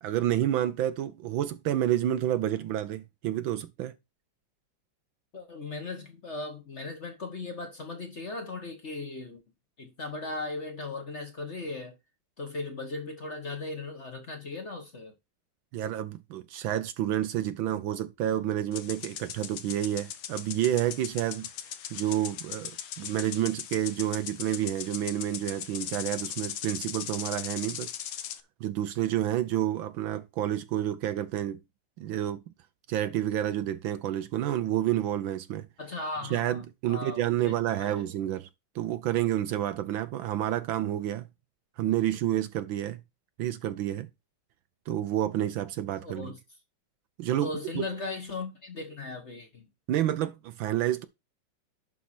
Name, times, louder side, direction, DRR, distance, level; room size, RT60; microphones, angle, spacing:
voice 1, 0.0-3.9 15.7-21.5 21.9-22.7 23.0-27.9 28.6-31.6 32.0-32.4 32.9-35.7 36.3-38.5 38.7-41.3 41.8-43.0 43.4-44.1 44.9-46.3 47.2-47.8 49.9-51.0, right 12 dB, 70° right, 1.3 m, -29 dB
voice 2, 5.3-9.4 9.8-12.0 12.4-15.1 35.8-38.0 46.0-46.4 47.4-49.7, left 3 dB, 35° left, 1.3 m, -38 dB
sound 1, 18.7-28.4, left 10 dB, 70° left, 1.6 m, -39 dB
11.0 x 4.7 x 4.3 m
omnidirectional pair, 2.4 m